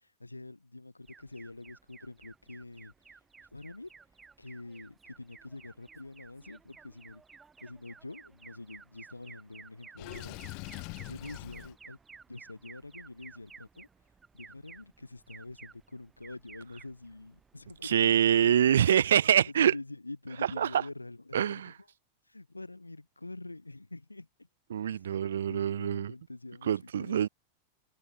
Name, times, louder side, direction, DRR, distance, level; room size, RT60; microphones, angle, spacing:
voice 1, 0.0-3.2 3.5-3.9 4.4-7.2 7.6-12.0 12.3-13.9 14.3-18.6 19.2-21.7 22.3-24.5 24.9-27.2, left 2 dB, 85° left, 4.7 m, -46 dB
Alarm, 1.0-18.7, right 5 dB, 15° right, 3.4 m, -55 dB
Water / Sink (filling or washing), 10.0-11.7, left 35 dB, 45° left, 2.9 m, -42 dB
voice 2, 17.8-19.7 20.6-20.7 21.3-21.7 24.7-26.1 26.7-27.3, right 9 dB, 65° right, 0.6 m, -25 dB
figure-of-eight pair, 90°, 0 cm